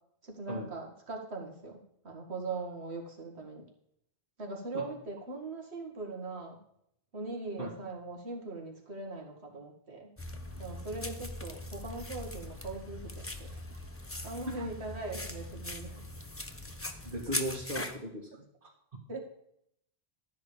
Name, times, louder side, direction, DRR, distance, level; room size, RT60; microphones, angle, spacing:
voice 1, 0.2-3.6 4.4-6.6 7.1-10.1 10.6-13.6 14.2-16.0 19.1-19.2, right 3 dB, 85° right, 1 dB, 2.2 m, -41 dB
sound 1, 10.2-18.0, left 1 dB, 15° left, 1.0 m, -41 dB
voice 2, 17.0-18.3 18.6-18.7, equal, 55° right, -3 dB, 2.0 m, -37 dB
12.5 x 4.9 x 8.5 m, 0.71 s
omnidirectional pair, 1.1 m